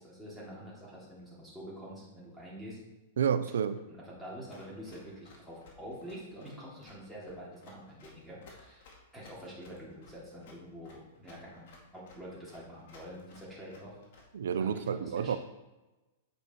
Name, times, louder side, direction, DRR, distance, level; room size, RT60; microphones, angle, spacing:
voice 1, 0.0-2.8 3.9-8.9 9.1-14.0 14.6-15.4, equal, 5° right, -8 dB, 3.0 m, -46 dB
voice 2, 3.2-3.8 14.3-15.4, right 7 dB, 90° right, 12 dB, 0.6 m, -30 dB
Run, 4.5-14.5, left 3 dB, 60° left, 2.3 m, -58 dB
8.1 x 5.4 x 4.6 m, 1.1 s
hypercardioid pair, 145°, 0 cm